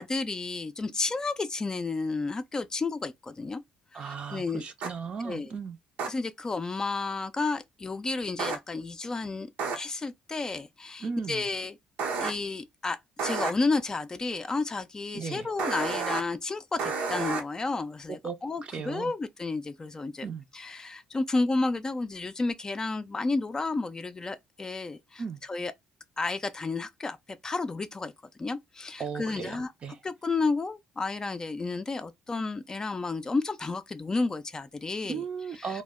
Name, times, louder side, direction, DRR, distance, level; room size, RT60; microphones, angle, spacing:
voice 1, 0.0-3.6 3.9-4.6 5.2-5.5 6.1-9.5 9.7-11.8 12.2-20.3 20.5-25.2 25.5-25.7 26.2-28.1 28.4-29.7 30.0-35.2 35.6-35.8, left 3 dB, 25° left, 0.4 m, -31 dB
voice 2, 3.9-5.8 11.0-11.5 15.1-15.5 18.2-19.1 20.2-20.4 25.2-25.4 29.0-30.0 35.1-35.8, right 5 dB, 45° right, 0.5 m, -36 dB
sound 1, 4.8-4.9 6.0-6.1 8.4-8.6 9.6-9.8 12.0-12.3 13.2-13.5 15.6-16.2 16.8-17.4, right 4 dB, 85° right, 0.7 m, -30 dB
2.1 x 2.0 x 3.5 m
cardioid pair, 85°, 3 cm